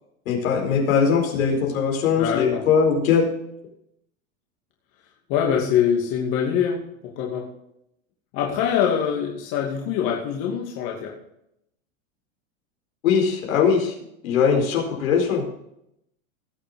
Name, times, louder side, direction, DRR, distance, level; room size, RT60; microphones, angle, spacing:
voice 1, 0.3-3.3 13.0-13.9 14.2-15.4, left 6 dB, 85° left, 1 dB, 4.3 m, -20 dB
voice 2, 2.1-2.6 5.3-7.5 8.3-11.2, left 8 dB, 55° left, -1 dB, 2.6 m, -24 dB
18.0 x 6.9 x 3.8 m, 0.78 s
supercardioid pair, 115°, 40 cm